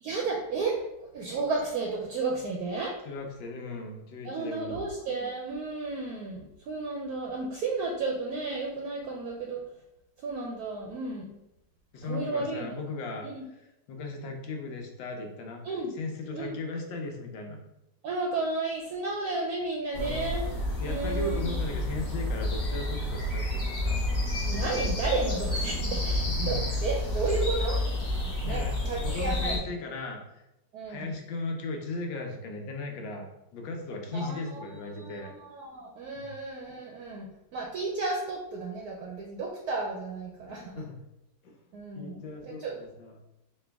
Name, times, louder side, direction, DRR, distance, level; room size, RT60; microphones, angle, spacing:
voice 1, 0.0-3.0 4.2-9.6 10.2-11.3 12.1-12.8 13.2-13.4 15.6-15.9 16.3-16.6 18.0-20.5 20.8-21.5 24.4-29.7 30.7-31.1 34.1-34.6 35.0-40.7 41.7-42.8, right 3 dB, 70° right, -1 dB, 0.9 m, -33 dB
voice 2, 3.0-4.8 11.9-13.3 13.9-17.6 19.9-20.4 20.8-24.0 26.4-26.6 28.4-28.7 29.0-30.2 30.9-35.3 36.1-36.3 40.7-41.0 41.4-41.5 41.9-43.1, left 2 dB, 90° left, 2 dB, 1.5 m, -37 dB
sound 1, 19.9-29.6, left 1 dB, 35° left, 0.8 m, -30 dB
4.2 x 2.9 x 3.4 m, 0.89 s
omnidirectional pair, 2.0 m